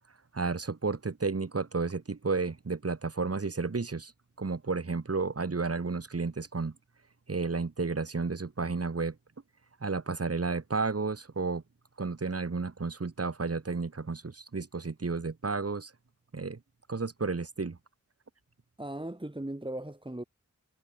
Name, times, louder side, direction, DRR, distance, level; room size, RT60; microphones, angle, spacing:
voice 1, 0.3-4.1 4.4-6.7 7.3-9.2 9.8-11.6 12.0-15.9 16.3-16.6 16.9-17.8, right 4 dB, 50° right, 2.1 m, -32 dB
voice 2, 18.8-20.2, right 1 dB, 15° right, 2.4 m, -37 dB
wide cardioid pair, 65°, 31 cm